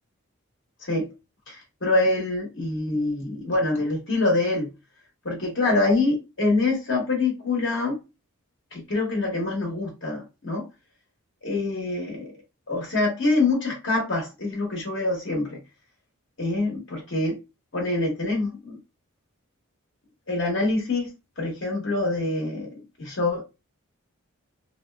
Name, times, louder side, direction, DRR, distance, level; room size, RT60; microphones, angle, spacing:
voice 1, 1.5-4.7 5.2-8.0 8.7-10.6 11.4-12.3 12.7-15.6 16.4-17.4 17.7-18.8 20.3-21.1 21.4-22.7 23.0-23.4, left 2 dB, 55° left, 1.0 m, -25 dB
3.1 x 2.6 x 2.2 m
head